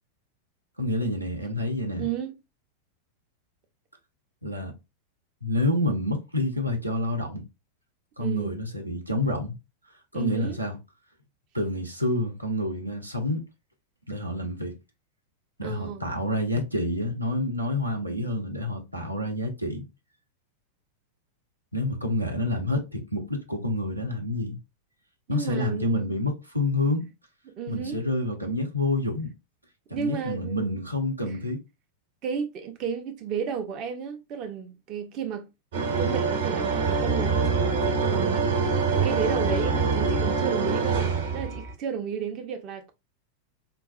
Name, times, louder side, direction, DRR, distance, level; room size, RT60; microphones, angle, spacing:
voice 1, 0.8-2.1 4.4-4.7 5.4-7.4 8.2-9.6 10.1-10.8 11.5-13.4 14.1-14.8 15.6-19.8 21.7-24.6 25.3-27.1 27.7-29.3 29.9-31.6, left 1 dB, 85° right, 0.6 m, -28 dB
voice 2, 2.0-2.4 8.2-8.6 10.1-10.6 15.6-16.0 25.3-26.2 27.5-28.0 29.9-30.8 31.2-31.4 32.2-35.5 36.0-38.6 39.0-42.9, right 7 dB, 35° right, 0.5 m, -33 dB
sound 1, 35.7-41.7, right 4 dB, 60° right, 0.8 m, -25 dB
3.9 x 2.3 x 2.4 m
figure-of-eight pair, 90°, 0 cm